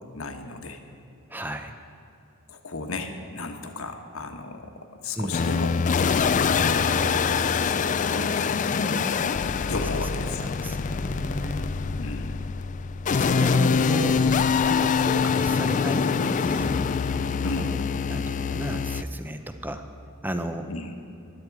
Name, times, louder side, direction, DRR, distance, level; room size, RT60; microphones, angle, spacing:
voice 1, 0.1-0.8 2.5-5.8 6.5-9.1 9.7-10.6 12.0-12.4 17.4-17.8 20.7-20.9, left 2 dB, 65° left, 5 dB, 1.2 m, -34 dB
voice 2, 1.3-1.7 5.2-5.3 10.3-11.6 13.1-16.7 17.5-17.7 18.1-19.9 20.2-20.7, right 1 dB, 10° right, 7 dB, 0.7 m, -33 dB
sound 1, 5.3-19.0, left 5 dB, 35° left, 0.3 m, -24 dB
15.5 x 12.0 x 4.7 m, 2.7 s
head